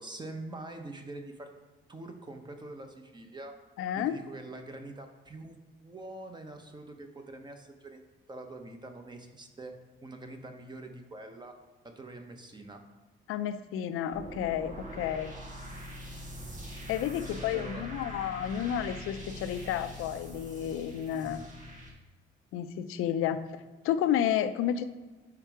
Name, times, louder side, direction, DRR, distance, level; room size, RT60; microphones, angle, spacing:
voice 1, 0.0-1.5 1.9-3.6 4.0-8.0 8.3-9.7 10.0-12.8 17.1-17.8 21.1-21.5, right 2 dB, 20° right, 5 dB, 0.7 m, -45 dB
voice 2, 3.8-4.1 13.3-15.3 16.9-21.4 22.5-24.8, left 10 dB, 85° left, 10 dB, 0.4 m, -31 dB
sound 1, 14.1-21.9, equal, 35° right, 1.6 m, -43 dB
5.7 x 4.6 x 4.6 m, 1.3 s
cardioid pair, 115°, 21 cm